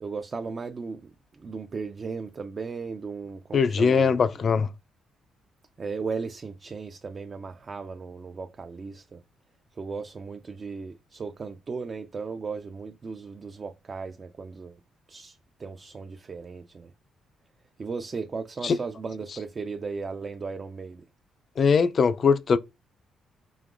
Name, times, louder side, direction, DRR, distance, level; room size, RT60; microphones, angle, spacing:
voice 1, 0.0-1.1 1.4-4.3 5.8-9.2 9.8-14.8 15.1-16.9 17.8-21.0, right 4 dB, 35° right, 0.4 m, -36 dB
voice 2, 3.5-4.7 18.6-18.8 21.6-22.6, left 5 dB, 50° left, 0.3 m, -21 dB
5.0 x 2.9 x 2.5 m
cardioid pair, 90°, 0 cm